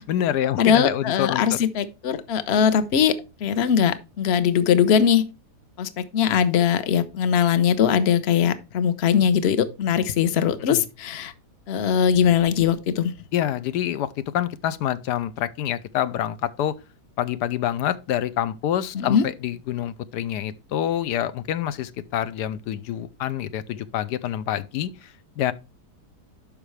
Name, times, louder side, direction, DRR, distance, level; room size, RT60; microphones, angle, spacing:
voice 1, 0.0-1.6 10.7-10.8 13.3-16.8 17.2-25.5, left 11 dB, 85° left, 1.2 m, -27 dB
voice 2, 0.6-3.1 3.4-5.3 5.8-11.3 11.7-13.1 18.9-19.2, left 8 dB, 50° left, 0.9 m, -21 dB
12.0 x 5.2 x 3.3 m
omnidirectional pair, 1.7 m